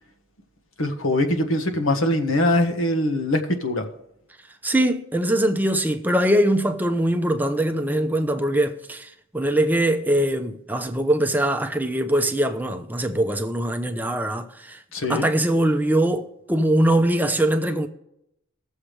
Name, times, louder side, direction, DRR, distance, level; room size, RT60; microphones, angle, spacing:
voice 1, 0.8-3.9 14.9-15.3, left 1 dB, 80° left, 1.4 m, -22 dB
voice 2, 4.6-14.8 15.1-17.9, right 1 dB, 10° right, 0.6 m, -22 dB
20.5 x 7.3 x 3.3 m
head